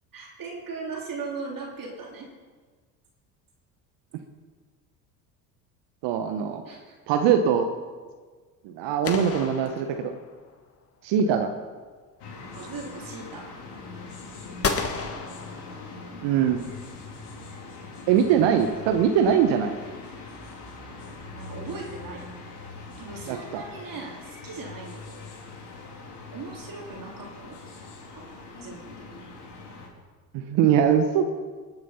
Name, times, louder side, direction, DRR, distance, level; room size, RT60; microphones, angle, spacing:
voice 1, 0.1-2.3 6.6-7.0 11.2-11.3 12.5-13.5 20.9-21.1 21.3-22.3 23.0-25.3 26.3-27.8 28.1-28.2 28.5-29.0 29.3-29.4, right 4 dB, 40° right, -1 dB, 3.2 m, -39 dB
voice 2, 6.0-6.6 7.1-7.7 8.6-10.1 11.0-11.5 16.2-16.6 18.1-19.7 23.3-23.6 30.3-31.3, right 8 dB, 60° right, 7 dB, 1.2 m, -22 dB
sound 1, 9.0-10.5 14.6-16.2, left 4 dB, 30° left, 1.6 m, -32 dB
sound 2, 12.2-29.9, left 3 dB, 55° left, 3.5 m, -42 dB
20.0 x 7.6 x 5.7 m, 1.5 s
hypercardioid pair, 70°, 50 cm